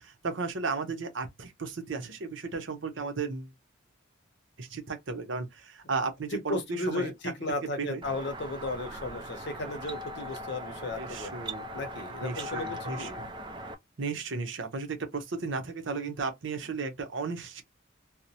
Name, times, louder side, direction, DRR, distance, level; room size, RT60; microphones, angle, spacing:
voice 1, 0.0-3.5 4.6-7.1 7.8-8.0 11.0-11.7 12.2-13.3 14.0-17.6, right 4 dB, 65° right, 0.7 m, -34 dB
voice 2, 6.3-11.3 11.7-13.2, left 2 dB, 60° left, 0.7 m, -35 dB
sound 1, 8.0-13.7, equal, 25° right, 0.3 m, -40 dB
2.8 x 2.0 x 2.7 m
head